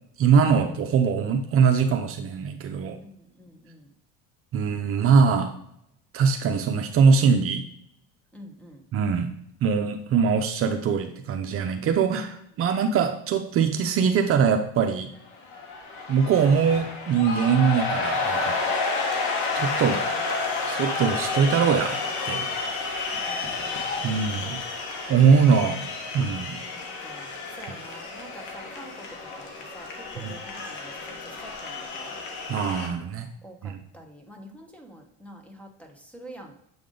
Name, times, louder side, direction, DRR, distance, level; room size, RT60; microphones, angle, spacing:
voice 1, 0.2-3.0 4.5-5.6 6.1-7.6 8.9-9.3 9.6-15.1 16.1-18.6 19.5-20.0 20.7-22.5 24.0-24.6 25.1-25.8 26.1-26.6 30.2-30.3 32.5-33.3 33.6-33.8, right 6 dB, 50° right, 6 dB, 0.6 m, -22 dB
voice 2, 3.0-3.9 8.3-8.8 20.1-20.8 23.2-24.2 25.6-25.7 26.7-29.1 29.3-32.2 33.4-36.5, right 1 dB, 5° left, 3 dB, 1.1 m, -47 dB
sound 1, 15.3-32.9, left 3 dB, 75° left, 1.4 m, -30 dB
7.6 x 3.5 x 3.8 m, 0.75 s
cardioid pair, 110°, 30 cm